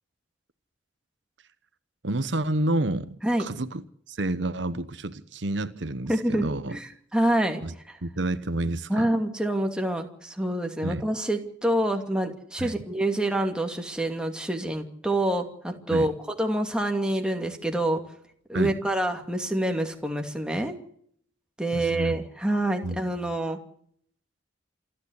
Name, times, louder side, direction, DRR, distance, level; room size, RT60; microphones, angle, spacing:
voice 1, 2.0-6.8 7.6-7.7 8.0-9.1 10.8-11.0 12.6-12.7 15.9-16.1 18.5-18.8 21.7-22.2 22.8-23.0, right 1 dB, 75° right, 1.1 m, -29 dB
voice 2, 6.1-8.0 8.9-16.1 16.4-18.0 18.5-20.7 21.6-23.6, right 1 dB, 5° right, 2.6 m, -27 dB
28.0 x 11.5 x 8.2 m
head